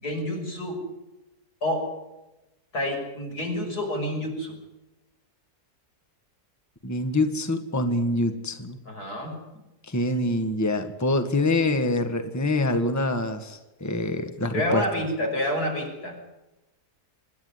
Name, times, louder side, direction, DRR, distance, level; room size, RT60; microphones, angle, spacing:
voice 1, 0.0-0.8 1.6-1.9 2.7-4.6 8.9-9.4 14.5-16.2, left 1 dB, 80° left, 1 dB, 6.5 m, -28 dB
voice 2, 6.8-8.8 9.9-14.8, left 2 dB, 10° left, 8 dB, 1.7 m, -25 dB
25.5 x 11.5 x 9.7 m, 1.0 s
omnidirectional pair, 1.6 m